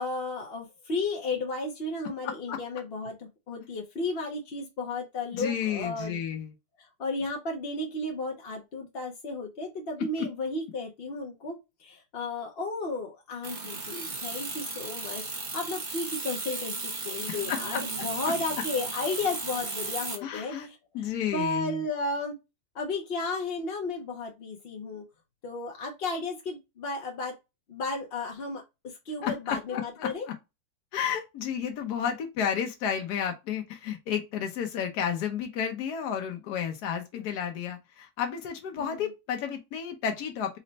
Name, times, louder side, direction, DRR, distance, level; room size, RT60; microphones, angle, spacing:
voice 1, 0.0-6.2 6.8-20.8 21.3-22.3 22.7-25.0 25.4-27.3 27.7-30.3 38.8-39.1, left 3 dB, 50° left, 0.7 m, -33 dB
voice 2, 2.2-2.6 5.3-6.5 17.3-17.8 18.2-18.6 20.2-20.7 20.9-21.8 29.2-30.3 30.9-40.6, left 8 dB, 80° left, 1.2 m, -32 dB
sound 1, 13.4-20.2, right 3 dB, 35° right, 0.9 m, -35 dB
4.1 x 2.1 x 3.9 m
omnidirectional pair, 1.7 m